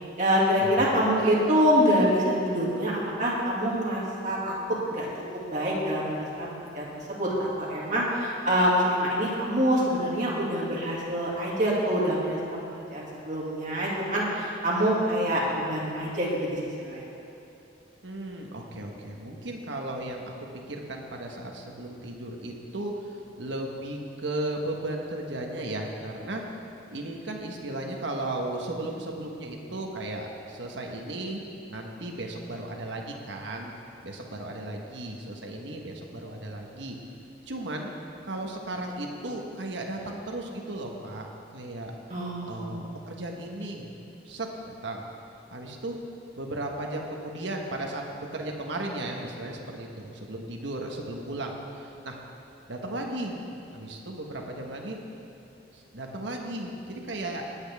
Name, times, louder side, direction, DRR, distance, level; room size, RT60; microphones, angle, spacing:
voice 1, 0.2-17.0 42.1-42.9, equal, 40° right, -5 dB, 2.4 m, -26 dB
voice 2, 18.0-26.4 26.9-33.7 34.0-37.0 37.5-37.9 38.2-41.3 41.5-41.9 42.5-43.9 44.2-45.1 45.5-46.0 46.4-52.2 52.7-53.3 53.7-55.0 55.7-57.4, right 1 dB, 75° right, 1 dB, 1.3 m, -35 dB
18.5 x 8.9 x 3.5 m, 2.8 s
head